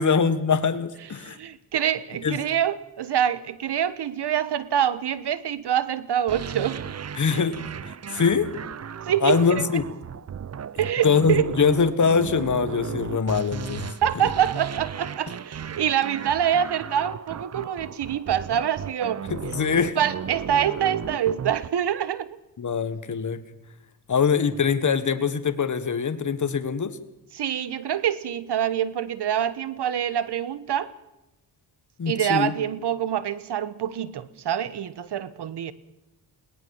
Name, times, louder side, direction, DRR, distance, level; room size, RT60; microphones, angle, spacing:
voice 1, 0.0-1.4 2.2-2.4 7.1-8.5 9.2-9.9 11.0-14.3 19.3-20.0 22.6-23.4 24.1-27.0 32.0-32.5, left 6 dB, 45° left, 1.6 m, -23 dB
voice 2, 1.2-6.8 9.1-9.7 10.8-11.4 14.0-19.2 20.0-22.4 27.3-30.9 32.1-35.7, right 9 dB, 75° right, 1.3 m, -25 dB
sound 1, 6.3-21.7, right 8 dB, 40° right, 0.6 m, -35 dB
21.0 x 18.5 x 7.3 m
cardioid pair, 80°, 41 cm